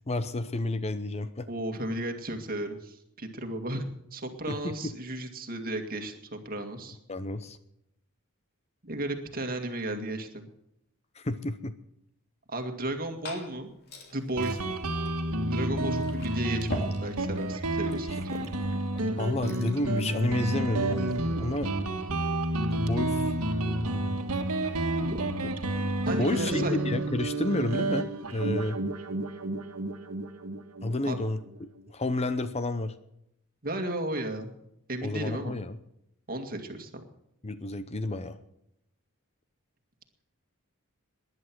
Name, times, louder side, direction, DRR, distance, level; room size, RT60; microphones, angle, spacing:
voice 1, 0.0-1.5 4.5-4.7 7.1-7.6 11.2-11.7 19.2-21.7 22.7-23.4 26.2-28.8 30.8-32.9 35.0-35.8 37.4-38.4, left 2 dB, 30° left, 12 dB, 0.7 m, -31 dB
voice 2, 1.5-3.8 4.1-7.0 8.8-10.5 12.5-13.7 14.1-14.7 15.5-18.3 25.0-25.2 26.1-26.8 31.0-31.2 33.6-34.5 34.9-35.6 36.3-37.0, right 1 dB, 40° right, 5 dB, 2.1 m, -34 dB
Glass / Fill (with liquid), 12.7-19.8, left 1 dB, 45° left, 2.9 m, -43 dB
Guitar, 14.4-31.6, right 1 dB, 80° right, 1.6 m, -30 dB
19.0 x 11.0 x 6.1 m, 0.80 s
head